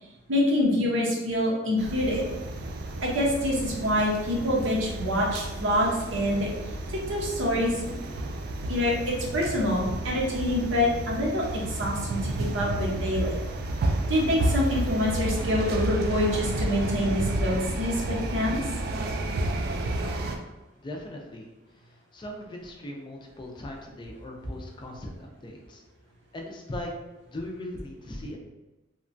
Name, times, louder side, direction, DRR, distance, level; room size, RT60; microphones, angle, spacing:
voice 1, 0.3-2.2 3.0-6.5 6.9-8.1 8.7-13.4 14.1-18.6, left 1 dB, 85° right, -3 dB, 0.8 m, -26 dB
sound 1, 1.8-20.4, right 1 dB, 55° right, 0.3 m, -31 dB
voice 2, 20.8-21.5 22.1-25.8 26.3-26.9 27.3-28.4, left 1 dB, 25° left, 0 dB, 0.4 m, -39 dB
2.9 x 2.2 x 2.5 m, 1.1 s
head